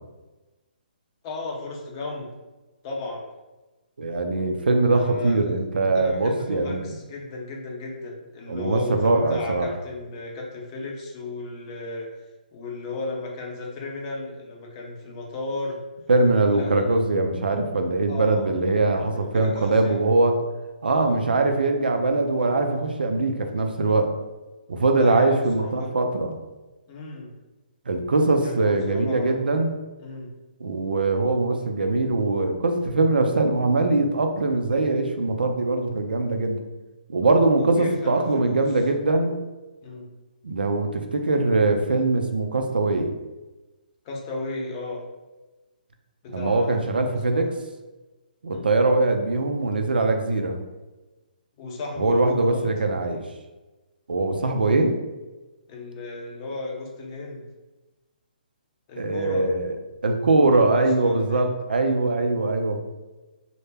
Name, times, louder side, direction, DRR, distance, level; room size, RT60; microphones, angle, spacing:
voice 1, 1.2-2.3 2.8-3.3 4.9-5.5 5.9-12.1 12.5-15.8 16.5-17.0 18.1-18.6 19.1-20.0 20.9-21.2 24.9-25.9 26.9-27.3 28.4-29.4 30.0-30.3 37.6-38.7 39.8-40.1 44.0-45.1 46.2-47.4 48.5-48.7 51.6-52.6 55.7-57.5 58.9-59.5 60.5-61.5, left 2 dB, 30° left, -1 dB, 0.5 m, -34 dB
voice 2, 4.0-6.9 8.5-9.7 16.1-20.4 20.8-24.1 24.7-26.4 27.9-29.7 30.6-36.6 37.1-39.3 40.4-43.1 46.3-47.5 48.4-50.6 52.0-53.2 54.1-54.9 59.0-59.7 60.0-62.8, right 2 dB, 85° right, 4 dB, 0.4 m, -22 dB
2.1 x 2.1 x 3.2 m, 1.1 s
hypercardioid pair, 140°, 5 cm